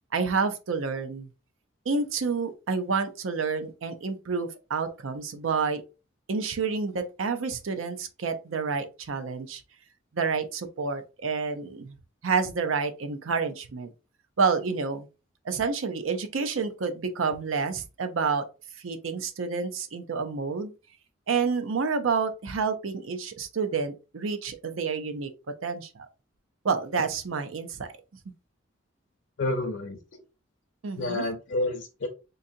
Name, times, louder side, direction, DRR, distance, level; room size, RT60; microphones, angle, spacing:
voice 1, 0.1-1.3 1.9-5.8 6.3-9.6 10.1-11.9 12.2-13.9 14.4-15.1 15.4-18.5 18.8-20.7 21.3-25.3 25.6-26.1 26.6-27.9 30.8-31.2, right 5 dB, 90° right, 0.6 m, -29 dB
voice 2, 29.4-30.2 30.9-32.1, left 2 dB, 60° left, 0.5 m, -30 dB
3.8 x 2.7 x 2.6 m
head